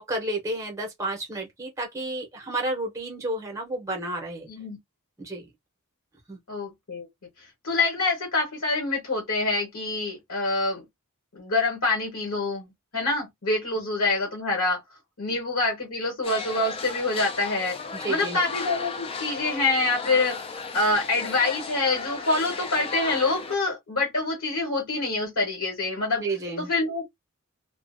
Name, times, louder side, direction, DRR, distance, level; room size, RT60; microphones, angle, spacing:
voice 1, 0.0-4.5 5.2-5.4 6.3-6.4 15.3-15.4 17.9-18.4 26.2-26.7, right 2 dB, 15° right, 0.8 m, -31 dB
voice 2, 6.5-7.1 7.6-10.8 11.3-14.8 15.2-17.8 18.1-20.4 20.7-26.2 26.6-27.0, left 3 dB, 65° left, 1.1 m, -26 dB
sound 1, 16.2-23.6, left 4 dB, 25° left, 0.4 m, -35 dB
2.4 x 2.0 x 2.5 m
head